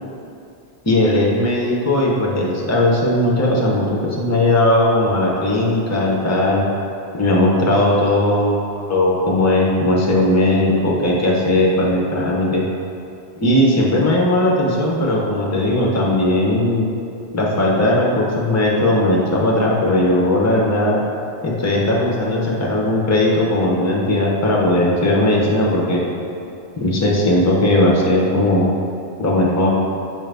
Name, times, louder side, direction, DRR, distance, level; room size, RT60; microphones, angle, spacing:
voice 1, 0.8-6.6 7.2-12.6 13.4-16.9 17.3-21.0 21.4-26.0 26.8-28.7 29.2-29.7, left 1 dB, 25° left, -3 dB, 0.4 m, -17 dB
6.4 x 2.5 x 3.3 m, 2.6 s
omnidirectional pair, 1.1 m